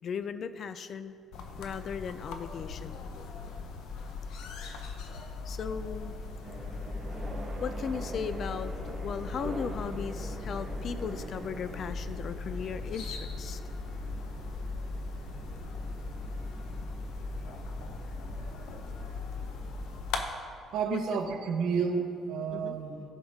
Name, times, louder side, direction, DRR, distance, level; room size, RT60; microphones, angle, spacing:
voice 1, 0.0-1.2 1.6-3.7 5.4-6.1 7.6-13.6 20.8-21.0 22.5-22.8, left 6 dB, 40° left, 12 dB, 0.3 m, -37 dB
sound 1, 1.2-2.1 2.4-2.6 3.5-3.6 4.2-5.3 5.6-6.5 8.6-11.6 11.8-15.2 16.0-16.4 17.0-17.2, left 1 dB, ahead, 1.9 m, -57 dB
sound 2, 1.3-20.2, left 3 dB, 80° left, 0.7 m, -39 dB
sound 3, 6.4-20.0, right 1 dB, 25° right, 1.1 m, -44 dB
voice 2, 20.7-23.0, right 5 dB, 75° right, 3 dB, 1.0 m, -31 dB
13.5 x 5.6 x 3.5 m, 2.4 s
cardioid pair, 170°, 0 cm